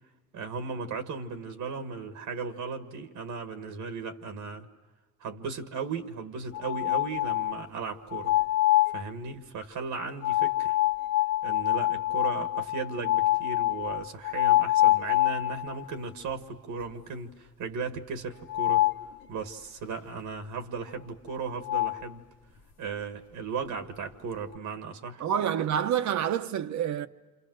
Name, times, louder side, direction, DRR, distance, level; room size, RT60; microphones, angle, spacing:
voice 1, 0.3-4.7 5.2-8.3 8.9-10.8 11.4-18.8 19.3-22.2 22.8-25.3, right 5 dB, 85° right, 1.8 m, -36 dB
sound 1, 6.5-7.6 8.1-9.0 10.2-15.8 16.3-16.4 16.8-16.9 18.5-19.0 21.3-21.4 21.6-22.0, left 16 dB, 85° left, 1.4 m, -25 dB
voice 2, 25.2-27.1, right 9 dB, 70° right, 1.0 m, -27 dB
28.0 x 28.0 x 6.3 m
cardioid pair, 90°, 30 cm